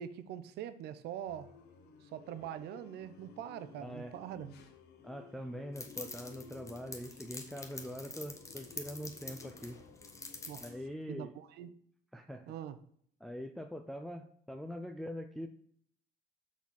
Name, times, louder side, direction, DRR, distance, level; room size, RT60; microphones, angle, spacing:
voice 1, 0.0-1.5 2.0-4.5 10.5-10.7 11.1-11.7 12.5-12.8, right 10 dB, 75° right, 0.6 m, -43 dB
sound 1, 1.3-10.9, left 6 dB, 80° left, 1.0 m, -56 dB
voice 2, 3.8-4.1 5.0-9.8 10.5-11.3 12.1-12.5 13.2-15.5, equal, ahead, 0.4 m, -43 dB
sound 2, 5.8-10.7, left 3 dB, 20° left, 1.1 m, -47 dB
6.0 x 4.1 x 5.8 m
cardioid pair, 110°, 17 cm